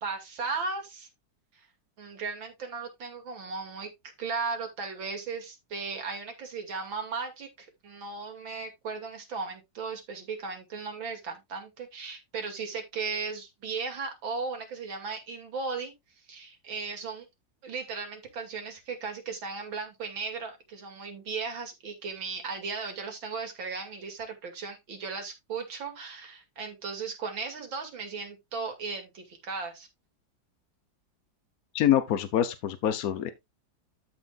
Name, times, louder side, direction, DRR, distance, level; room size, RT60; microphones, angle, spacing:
voice 1, 0.0-1.1 1.5-1.7 2.0-3.9 4.2-15.9 16.3-17.3 17.6-29.9, right 4 dB, 90° right, 3.1 m, -36 dB
voice 2, 31.7-33.3, left 11 dB, 60° left, 1.1 m, -25 dB
13.0 x 5.4 x 2.4 m
omnidirectional pair, 2.1 m